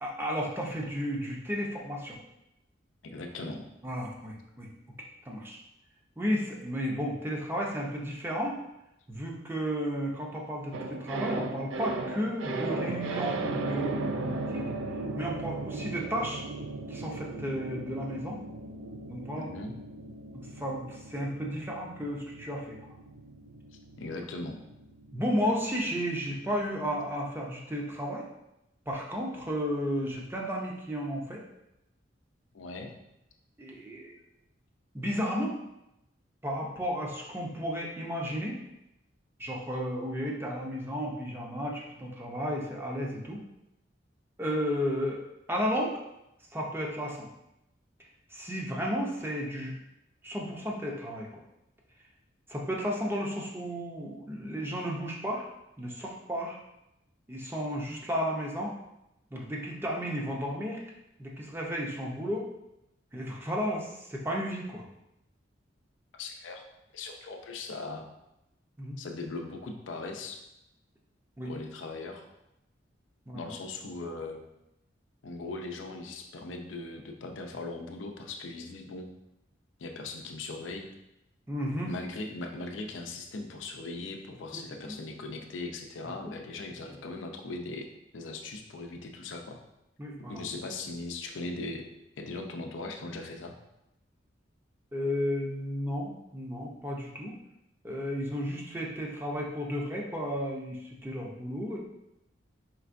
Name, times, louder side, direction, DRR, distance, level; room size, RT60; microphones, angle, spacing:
voice 1, 0.0-2.2 3.8-4.7 5.0-5.6 6.2-8.6 9.1-14.7 15.1-16.4 16.9-18.4 19.1-19.5 20.6-22.8 25.1-28.3 28.9-31.4 33.6-34.2 34.9-35.6 36.4-38.6 39.4-43.4 44.4-45.2 45.5-46.0 46.5-47.3 48.3-49.7 50.2-51.4 52.5-55.5 55.8-56.6 57.3-58.7 59.3-60.8 61.2-62.5 63.1-64.8 68.8-69.0 71.4-71.5 73.3-73.5 81.5-81.9 84.5-84.9 86.0-86.1 90.0-90.4 94.9-97.3 97.8-101.8, equal, 10° right, -1 dB, 0.6 m, -33 dB
voice 2, 3.0-3.6 19.3-19.7 24.0-24.6 32.5-32.9 66.1-66.7 66.9-68.1 69.0-70.4 71.4-72.3 73.3-74.4 75.2-79.1 79.8-80.9 81.9-87.9 88.1-89.6 90.2-91.9 92.2-93.5, left 3 dB, 90° left, 4 dB, 0.5 m, -39 dB
sound 1, 10.7-27.1 27.3-27.5, right 3 dB, 75° right, 0.3 m, -37 dB
4.5 x 3.3 x 2.5 m, 0.87 s
head